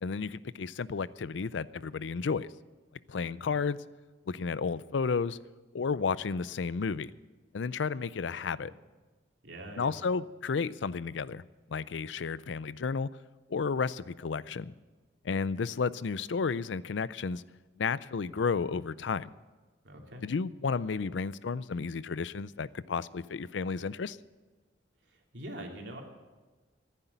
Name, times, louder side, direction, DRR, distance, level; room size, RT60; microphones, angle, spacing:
voice 1, 0.0-2.5 3.1-3.8 4.3-5.4 5.7-7.1 7.5-8.7 9.8-11.4 11.7-13.1 13.5-14.7 15.2-17.4 17.8-19.3 20.2-24.2, left 5 dB, 85° left, 18 dB, 0.5 m, -32 dB
voice 2, 9.4-9.9 19.8-20.2 25.1-26.0, right 1 dB, 75° right, 1 dB, 2.7 m, -44 dB
15.0 x 10.0 x 8.2 m, 1.2 s
head